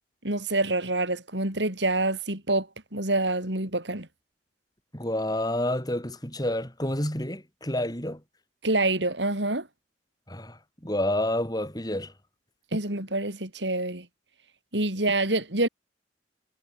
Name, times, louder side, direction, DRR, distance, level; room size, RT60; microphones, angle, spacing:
voice 1, 0.2-4.1 8.6-9.7 12.7-14.1 14.7-15.7, right 2 dB, 75° right, 7.3 m, -26 dB
voice 2, 4.9-8.2 10.3-10.6 10.8-12.1, left 1 dB, 20° left, 7.0 m, -29 dB
head